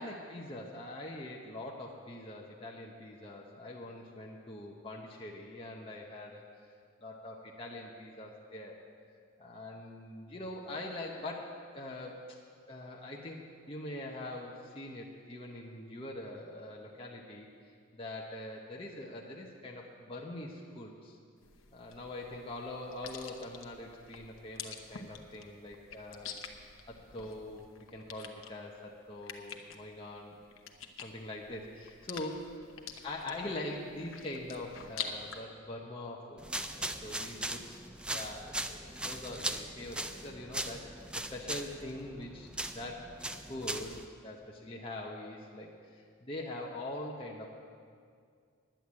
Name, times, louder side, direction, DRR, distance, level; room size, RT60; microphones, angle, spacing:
voice 1, 0.0-6.4 7.0-8.8 9.4-12.2 12.7-13.4 13.7-21.2 21.7-26.4 26.9-27.6 27.9-30.4 31.0-32.5 33.0-43.1 43.4-47.5, left 1 dB, 25° left, -3 dB, 0.8 m, -43 dB
sound 1, 21.4-35.4, left 6 dB, 70° left, 0.9 m, -47 dB
sound 2, 36.4-44.1, right 1 dB, 5° right, 0.3 m, -39 dB
10.0 x 7.9 x 9.5 m, 2.2 s
head